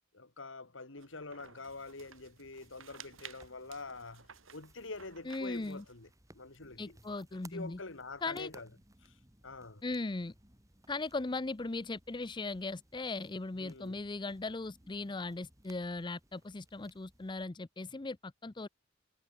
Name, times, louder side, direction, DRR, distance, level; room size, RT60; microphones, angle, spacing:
voice 1, 0.1-6.1 6.3-7.0 7.5-8.7 9.0-9.2 9.4-9.8 13.6-14.0, left 3 dB, 65° left, 2.1 m, -46 dB
sound 1, 1.0-6.0, right 8 dB, 80° right, 4.6 m, -55 dB
Forest footsteps, 1.7-17.5, right 1 dB, 15° right, 5.1 m, -63 dB
voice 2, 5.3-5.8 6.8-7.8 8.2-8.5 9.8-10.3 10.9-18.7, left 3 dB, 25° left, 0.6 m, -38 dB
head